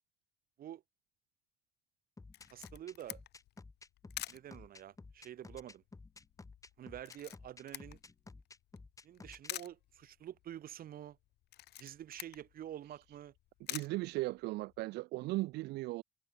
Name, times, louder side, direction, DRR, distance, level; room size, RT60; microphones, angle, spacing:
sound 1, 2.2-9.5, left 3 dB, 20° left, 7.4 m, -53 dB
Camera, 2.3-14.8, left 15 dB, 75° left, 6.0 m, -50 dB
voice 1, 2.5-3.2 4.3-5.8 6.8-8.0 9.0-11.2 11.8-13.3, right 11 dB, 60° right, 5.0 m, -48 dB
voice 2, 13.7-16.0, right 19 dB, 85° right, 0.8 m, -37 dB
cardioid pair, 110°, 17 cm